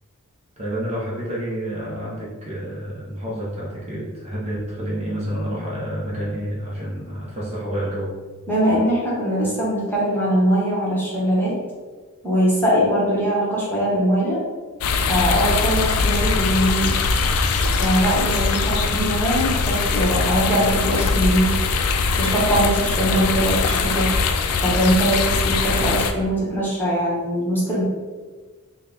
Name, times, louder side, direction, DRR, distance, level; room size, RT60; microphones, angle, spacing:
voice 1, 0.6-8.2, equal, 30° right, -6 dB, 0.7 m, -29 dB
voice 2, 8.5-11.6 12.2-14.4 15.1-17.0 17.8-21.5 22.2-24.1 24.6-27.8, equal, 10° left, -7 dB, 1.1 m, -21 dB
sound 1, 14.8-26.1, left 4 dB, 85° left, 0.4 m, -21 dB
3.8 x 2.2 x 4.0 m, 1.4 s
head